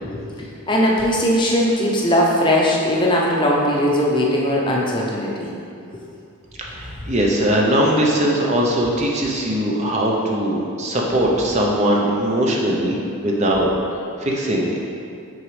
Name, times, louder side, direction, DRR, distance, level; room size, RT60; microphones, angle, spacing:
voice 1, 0.1-5.5, equal, 20° left, -3 dB, 0.6 m, -19 dB
voice 2, 6.6-14.8, right 1 dB, 30° right, -2 dB, 0.5 m, -20 dB
6.1 x 5.0 x 3.2 m, 2.5 s
head